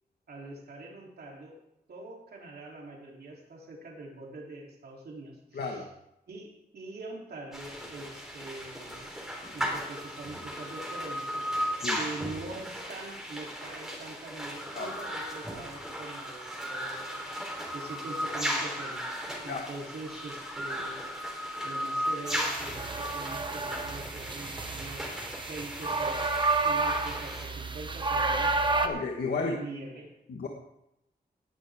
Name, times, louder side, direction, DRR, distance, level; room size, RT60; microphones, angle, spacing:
voice 1, 0.3-1.6 1.9-5.9 6.3-9.1 9.5-17.2 17.7-21.0 21.6-26.2 26.6-28.5 29.4-30.1, right 2 dB, 75° right, -1 dB, 3.3 m, -43 dB
voice 2, 5.5-5.8 11.8-12.0 14.7-14.9 19.5-19.7 28.7-29.6 30.3-30.5, left 4 dB, 80° left, 2 dB, 1.5 m, -32 dB
sound 1, 7.5-27.4, equal, 5° right, 3.4 m, -36 dB
sound 2, 22.3-28.9, right 3 dB, 30° right, 1.1 m, -30 dB
18.5 x 10.5 x 3.6 m, 0.85 s
wide cardioid pair, 145°, 16 cm